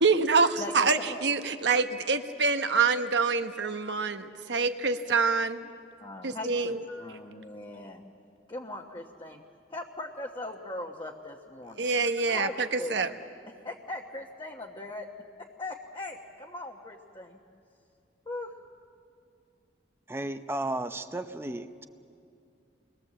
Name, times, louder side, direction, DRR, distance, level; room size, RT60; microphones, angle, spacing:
voice 1, 0.0-5.7 6.2-6.8 11.8-13.1, right 4 dB, 75° right, 7 dB, 1.1 m, -26 dB
voice 2, 0.6-1.2 6.0-8.0 8.5-9.4 9.7-11.9 12.3-13.2 13.6-15.1 15.4-17.4 18.2-18.5, left 2 dB, 25° left, 0 dB, 1.2 m, -40 dB
voice 3, 20.1-21.9, right 1 dB, 15° right, 8 dB, 0.6 m, -34 dB
28.0 x 21.5 x 7.6 m, 2.5 s
head